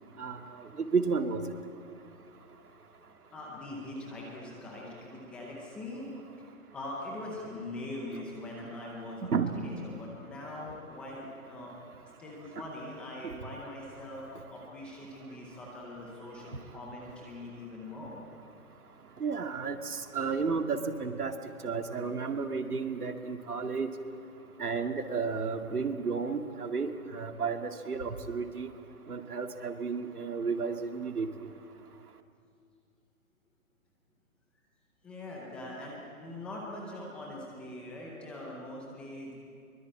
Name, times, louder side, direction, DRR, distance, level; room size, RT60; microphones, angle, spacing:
voice 1, 0.8-1.4 9.3-9.6 13.2-13.3 19.2-21.3 21.6-23.9 24.6-28.7 29.1-31.3, right 5 dB, 90° right, 6 dB, 2.3 m, -32 dB
voice 2, 3.3-6.1 6.7-11.7 12.2-18.2 35.0-39.3, left 1 dB, 5° left, -3 dB, 0.7 m, -42 dB
23.5 x 22.5 x 8.7 m, 2.3 s
hypercardioid pair, 155°, 44 cm